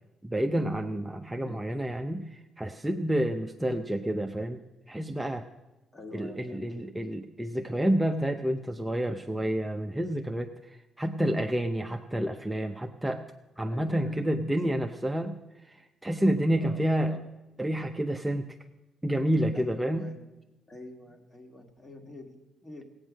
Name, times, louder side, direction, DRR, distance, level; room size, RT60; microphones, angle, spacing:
voice 1, 0.2-4.6 4.9-5.4 6.1-13.2 13.6-15.4 15.7-15.8 16.0-17.1 17.6-18.5 19.0-20.1, right 1 dB, 10° right, 4 dB, 0.6 m, -29 dB
voice 2, 1.4-1.8 5.9-6.9 13.7-14.8 16.6-16.8 17.1-17.3 19.5-20.3 20.7-22.8, left 2 dB, 25° left, 4 dB, 2.0 m, -47 dB
16.5 x 9.0 x 6.3 m, 1.0 s
cardioid pair, 90°, 0 cm